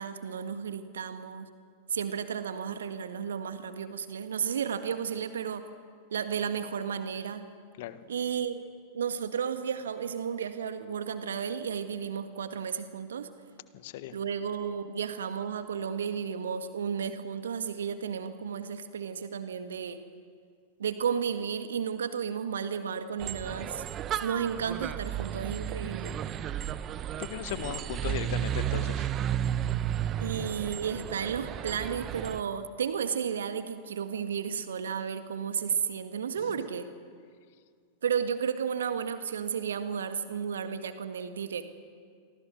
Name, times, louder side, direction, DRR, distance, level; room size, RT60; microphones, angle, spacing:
voice 1, 0.0-1.5 1.9-5.7 6.1-7.5 8.1-8.6 8.9-13.3 14.1-20.0 20.8-23.8 24.2-26.2 30.2-36.9 38.0-41.8, right 7 dB, 65° right, 9 dB, 1.7 m, -33 dB
voice 2, 13.7-14.1 27.2-29.1 36.4-36.5, left 12 dB, 50° left, 13 dB, 1.4 m, -37 dB
sound 1, 23.2-32.4, right 10 dB, 30° right, 1.1 m, -33 dB
29.0 x 24.0 x 6.3 m, 2.1 s
figure-of-eight pair, 90°, 0 cm